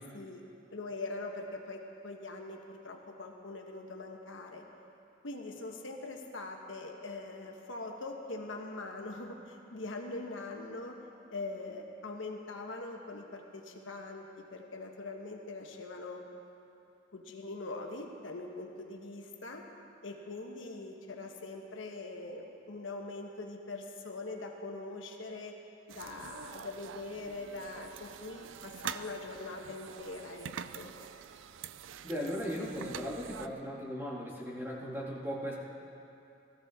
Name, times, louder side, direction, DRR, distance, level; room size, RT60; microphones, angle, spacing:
voice 1, 0.7-4.6 5.2-11.0 11.3-16.2 17.1-19.6 20.0-25.5 25.9-30.9, left 2 dB, 90° left, 2 dB, 1.2 m, -42 dB
sound 1, 25.9-33.5, right 8 dB, 80° right, 0.4 m, -45 dB
voice 2, 32.0-35.5, equal, 15° right, -5 dB, 2.1 m, -37 dB
17.0 x 13.5 x 3.6 m, 2.7 s
head